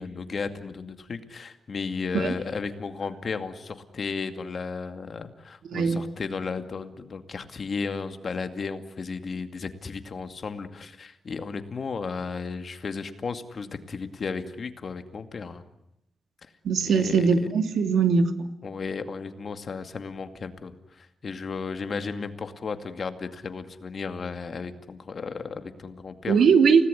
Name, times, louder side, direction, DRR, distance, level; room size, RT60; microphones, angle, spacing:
voice 1, 0.0-15.6 16.8-17.5 18.6-26.4, left 5 dB, 45° left, 9 dB, 2.4 m, -34 dB
voice 2, 5.7-6.0 16.6-18.3 26.3-26.9, right 5 dB, 80° right, 8 dB, 2.7 m, -20 dB
29.5 x 18.5 x 9.9 m, 0.85 s
wide cardioid pair, 120°, 0 cm